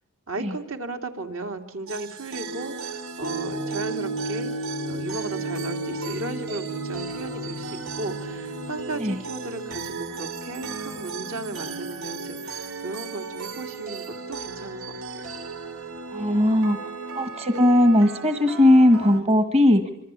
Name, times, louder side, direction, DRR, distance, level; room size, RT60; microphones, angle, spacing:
voice 1, 0.3-4.5 4.9-15.3, right 2 dB, 65° right, 4 dB, 3.1 m, -35 dB
sound 1, 1.9-19.2, right 4 dB, 85° right, 2.9 m, -36 dB
sound 2, 3.2-8.7, right 1 dB, 50° right, 3.0 m, -33 dB
voice 2, 16.1-16.8 17.1-19.9, left 1 dB, 30° right, 8 dB, 1.4 m, -18 dB
26.0 x 24.5 x 8.6 m, 0.76 s
head